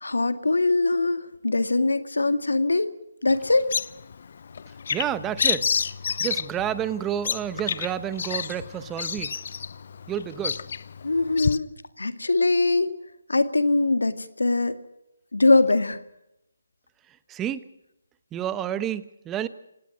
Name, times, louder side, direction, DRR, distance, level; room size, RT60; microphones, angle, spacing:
voice 1, 0.0-2.9 3.2-3.7 11.0-11.7 12.0-12.9 13.3-14.8 15.3-16.0, left 2 dB, 90° left, 10 dB, 2.1 m, -22 dB
Bird vocalization bird call bird song, 3.3-11.6, left 6 dB, 50° left, 0.8 m, -30 dB
voice 2, 4.9-5.7 6.2-9.4 10.1-10.6 17.3-17.6 18.3-19.5, right 10 dB, 10° right, 14 dB, 1.0 m, -30 dB
27.5 x 18.0 x 6.1 m, 0.86 s
figure-of-eight pair, 155°, 0 cm